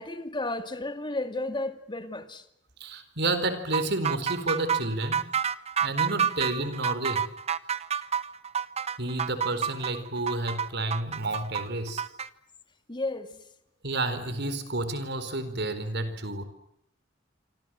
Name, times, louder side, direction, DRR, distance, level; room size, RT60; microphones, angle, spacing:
voice 1, 0.0-2.5 6.2-6.3 12.9-13.5, left 2 dB, 25° left, 2.3 m, -33 dB
voice 2, 2.8-5.3 5.8-7.3 9.0-12.0 13.8-16.4, right 2 dB, 60° right, 4.5 m, -30 dB
sound 1, 3.7-12.3, right 7 dB, 35° right, 1.1 m, -29 dB
27.0 x 26.0 x 7.7 m
head